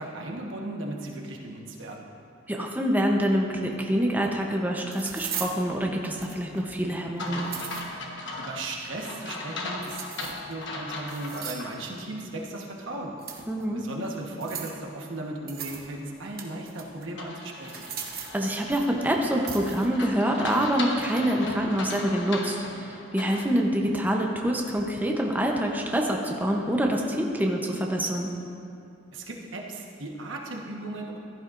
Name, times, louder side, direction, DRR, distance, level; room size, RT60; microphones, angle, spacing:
voice 1, 0.0-2.0 8.4-13.1 13.7-17.9 29.1-31.2, right 2 dB, 75° right, 0 dB, 1.2 m, -36 dB
voice 2, 2.5-7.5 13.5-13.8 18.3-28.3, equal, 10° right, 0 dB, 0.7 m, -26 dB
sound 1, 4.0-4.1 4.9-5.6 6.2-6.6 7.3-7.8 9.8-10.5 11.1-11.7 13.2-13.6 14.4-14.8 15.5-15.9 16.2-17.0 17.6-18.4 19.5-19.9, right 8 dB, 50° right, 1.0 m, -38 dB
sound 2, 7.2-11.7 12.1-12.2 17.2-23.5, left 2 dB, 65° left, 1.2 m, -37 dB
15.0 x 11.0 x 2.5 m, 2.6 s
head